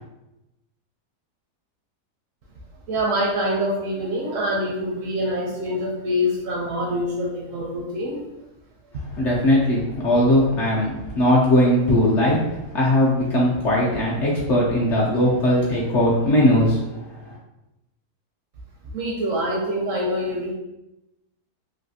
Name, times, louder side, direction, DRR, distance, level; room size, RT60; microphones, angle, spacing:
voice 1, 2.9-8.2 18.8-20.5, equal, 70° right, -2 dB, 0.8 m, -25 dB
voice 2, 9.1-12.4 12.7-17.4, left 1 dB, 60° left, -5 dB, 0.8 m, -19 dB
3.2 x 2.6 x 2.7 m, 0.96 s
omnidirectional pair, 1.7 m